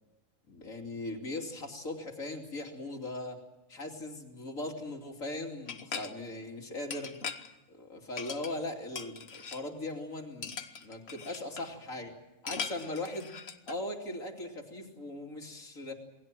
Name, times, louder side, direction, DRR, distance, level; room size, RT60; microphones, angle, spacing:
voice 1, 0.5-3.4 3.7-7.2 7.7-10.6 10.8-12.1 12.4-13.3 13.7-15.9, left 2 dB, 90° left, 3 dB, 3.4 m, -39 dB
sound 1, 5.7-6.1 6.9-7.5 8.2-8.7 9.0-9.6 10.4-11.7 12.5-13.7, left 6 dB, 55° left, 1.4 m, -40 dB
28.0 x 20.0 x 7.6 m, 0.98 s
omnidirectional pair, 1.4 m